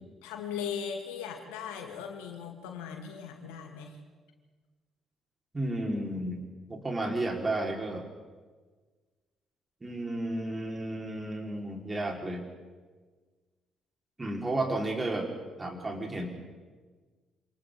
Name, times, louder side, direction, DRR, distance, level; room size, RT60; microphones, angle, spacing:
voice 1, 0.2-4.0, left 7 dB, 75° left, 3 dB, 2.4 m, -38 dB
voice 2, 5.5-6.4 6.7-8.1 9.8-12.4 14.2-15.3 15.6-16.3, right 1 dB, 25° right, 1 dB, 4.6 m, -32 dB
28.0 x 27.5 x 3.9 m, 1.4 s
figure-of-eight pair, 45°, 0 cm